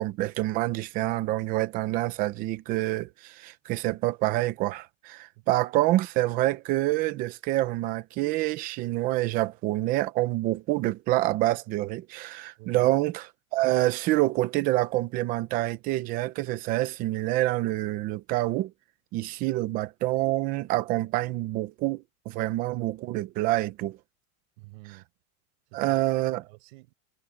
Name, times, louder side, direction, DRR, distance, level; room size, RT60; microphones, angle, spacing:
voice 1, 0.0-13.2 13.5-18.7 19.1-24.0 25.7-26.4, right 17 dB, 20° right, 0.6 m, -27 dB
voice 2, 12.6-12.9 24.6-25.1 25.7-26.0 26.5-26.9, right 26 dB, 45° right, 5.2 m, -49 dB
supercardioid pair, 175°, 42 cm